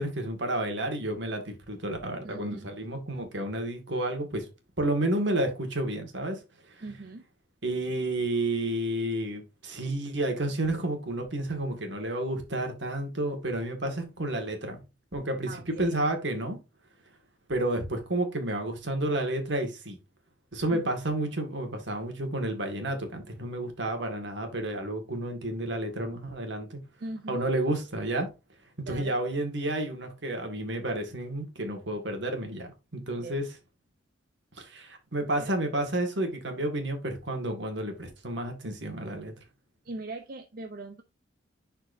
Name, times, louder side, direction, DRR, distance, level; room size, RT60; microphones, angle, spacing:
voice 1, 0.0-4.5 4.8-6.4 7.6-14.8 15.1-16.6 17.5-20.0 20.5-26.8 27.3-28.3 28.8-33.5 34.6-39.3, right 1 dB, 70° right, 1.9 m, -31 dB
voice 2, 2.2-2.7 6.8-7.2 15.4-15.9 20.7-20.8 27.0-27.4 28.9-29.2 33.2-33.4 35.4-35.6 39.8-41.0, right 2 dB, 50° right, 0.7 m, -40 dB
10.5 x 4.5 x 2.6 m
head